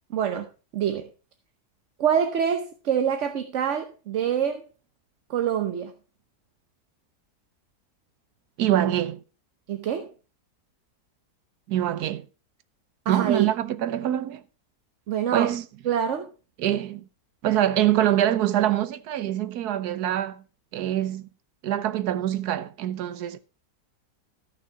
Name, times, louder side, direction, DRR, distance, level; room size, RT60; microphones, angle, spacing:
voice 1, 0.1-0.4 0.7-1.1 2.0-4.6 5.3-5.9 9.7-10.1 13.1-13.5 15.1-15.5 15.8-16.3, right 8 dB, 55° right, 1.0 m, -25 dB
voice 2, 8.6-9.2 11.7-12.2 13.1-14.4 15.3-15.7 16.6-17.0 17.4-20.4 20.7-21.3 21.6-23.4, right 12 dB, 80° right, 1.3 m, -24 dB
14.0 x 6.1 x 4.7 m
omnidirectional pair, 1.7 m